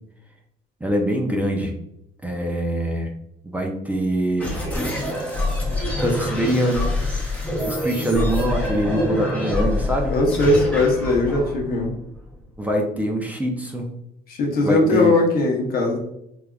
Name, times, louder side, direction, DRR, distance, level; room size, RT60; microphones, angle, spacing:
voice 1, 0.8-1.7 2.2-3.1 3.4-4.5 6.0-6.9 7.7-10.1 12.6-13.9 14.6-15.1, equal, 10° right, 0 dB, 0.4 m, -23 dB
sound 1, 4.4-12.6, left 1 dB, 10° left, 0.8 m, -26 dB
voice 2, 10.1-11.9 14.3-16.0, left 2 dB, 60° left, 1 dB, 0.8 m, -19 dB
3.2 x 2.4 x 2.2 m, 0.79 s
cardioid pair, 110°, 17 cm